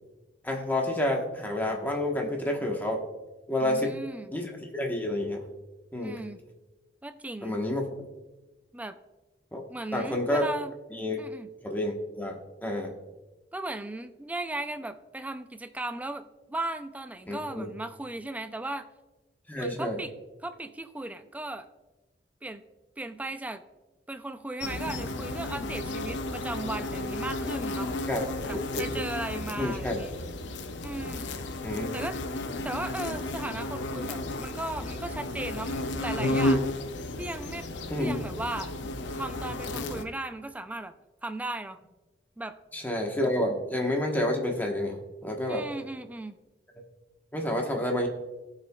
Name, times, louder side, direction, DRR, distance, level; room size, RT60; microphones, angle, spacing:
voice 1, 0.4-3.0 3.5-3.9 4.3-5.4 5.9-6.2 7.4-7.9 9.5-9.6 9.9-10.5 10.9-11.2 11.6-12.4 12.6-12.9 17.3-17.7 19.5-20.0 28.1-28.2 28.5-28.8 29.6-30.0 31.6-32.0 37.9-38.2 42.7-45.0 45.2-45.6 47.3-48.1, left 1 dB, 10° left, 1 dB, 1.1 m, -29 dB
voice 2, 3.6-4.3 6.0-6.4 7.0-7.6 8.7-9.0 9.7-10.7 11.2-11.5 13.5-18.9 19.6-20.1 20.4-21.7 22.4-22.6 23.0-23.6 24.1-27.9 28.4-30.1 30.8-31.2 31.9-32.2 32.6-36.7 37.2-37.7 38.0-38.7 39.2-40.9 41.2-41.8 42.4-42.6 45.5-46.4, right 2 dB, 10° right, 10 dB, 0.3 m, -36 dB
sound 1, 24.6-40.1, left 1 dB, 90° left, 0.6 m, -33 dB
17.0 x 5.7 x 2.3 m, 1.1 s
head